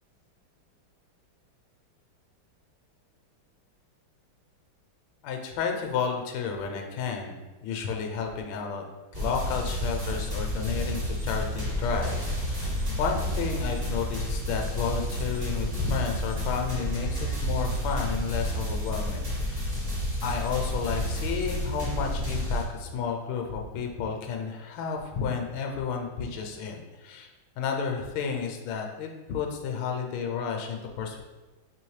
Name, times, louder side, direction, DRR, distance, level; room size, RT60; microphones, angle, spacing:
voice 1, 5.2-8.8 9.1-19.7 20.2-27.3 27.6-31.2, left 6 dB, 80° left, 3 dB, 1.4 m, -32 dB
sound 1, 9.1-22.6, equal, 40° right, 0.5 m, -30 dB
4.9 x 2.9 x 3.1 m, 1.2 s
omnidirectional pair, 2.2 m